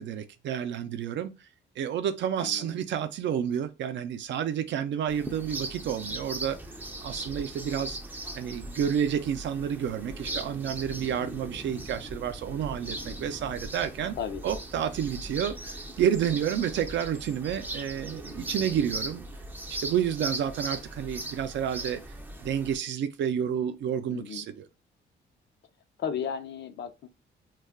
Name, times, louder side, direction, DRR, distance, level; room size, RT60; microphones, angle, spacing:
voice 1, 0.0-1.3 1.8-6.6 7.0-8.0 8.4-14.2 14.4-19.3 19.7-22.0 22.4-24.6, right 9 dB, 65° right, 0.5 m, -30 dB
voice 2, 2.4-2.8 14.1-14.4 24.1-24.5 26.0-27.1, left 7 dB, 65° left, 0.6 m, -34 dB
sound 1, 5.1-22.8, right 1 dB, 10° right, 0.4 m, -39 dB
2.3 x 2.2 x 3.5 m
cardioid pair, 90°, 20 cm